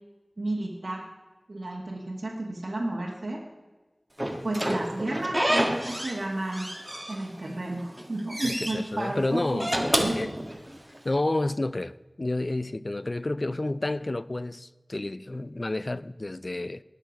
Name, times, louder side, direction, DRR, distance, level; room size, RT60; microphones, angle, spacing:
voice 1, 0.4-1.0 1.5-3.4 4.4-6.7 7.1-10.3, right 1 dB, 85° right, 1.4 m, -32 dB
Slam / Squeak, 4.2-6.2 6.5-7.5 7.9-8.8 9.4-11.0, equal, 15° right, 1.6 m, -29 dB
voice 2, 8.4-10.3 11.0-16.8, left 2 dB, 55° left, 0.4 m, -30 dB
19.5 x 6.5 x 5.2 m
wide cardioid pair, 45°, 0 cm